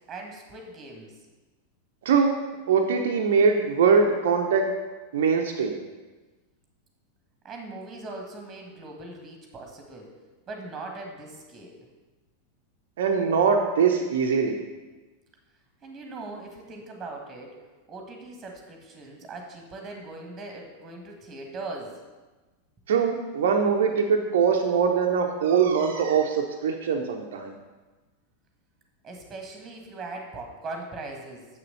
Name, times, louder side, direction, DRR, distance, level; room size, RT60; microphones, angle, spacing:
voice 1, 0.1-1.2 7.4-10.1 10.5-11.9 15.8-22.0 29.0-31.5, right 2 dB, 20° right, 2 dB, 1.6 m, -40 dB
voice 2, 2.0-2.4 2.7-4.7 5.1-5.8 13.0-14.6 22.9-27.5, right 6 dB, 60° right, 2 dB, 0.8 m, -22 dB
7.0 x 6.7 x 6.8 m, 1.2 s
figure-of-eight pair, 90°, 0 cm